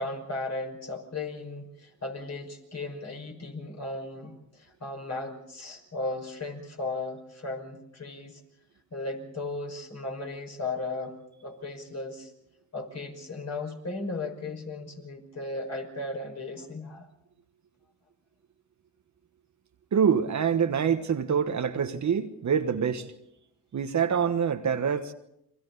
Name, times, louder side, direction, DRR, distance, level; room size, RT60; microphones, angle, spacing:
voice 1, 0.0-8.4 8.9-11.1 11.4-12.3 12.7-17.1, left 2 dB, 40° left, 5.7 m, -36 dB
voice 2, 19.9-23.1 23.7-25.1, right 7 dB, 40° right, 1.4 m, -25 dB
30.0 x 23.0 x 4.1 m
supercardioid pair, 75°, 42 cm